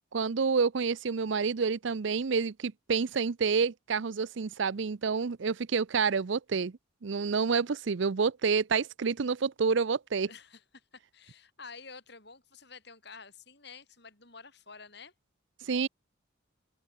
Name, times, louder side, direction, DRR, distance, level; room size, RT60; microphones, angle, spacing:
voice 1, 0.1-6.7 7.0-10.3 15.6-15.9, right 5 dB, 65° right, 0.5 m, -28 dB
voice 2, 10.3-15.1, left 5 dB, 55° left, 6.3 m, -50 dB
head